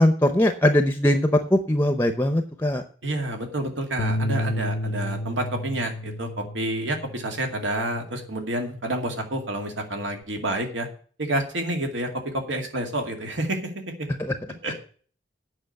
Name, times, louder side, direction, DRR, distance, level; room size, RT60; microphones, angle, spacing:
voice 1, 0.0-2.8 14.2-14.3 14.7-14.8, left 1 dB, 10° left, 8 dB, 0.7 m, -21 dB
voice 2, 3.0-10.9 11.2-14.1 14.6-14.7, right 1 dB, 85° right, 4 dB, 2.3 m, -29 dB
sound 1, 4.0-10.2, left 1 dB, 80° left, 0.7 m, -33 dB
8.8 x 6.0 x 8.1 m, 0.43 s
head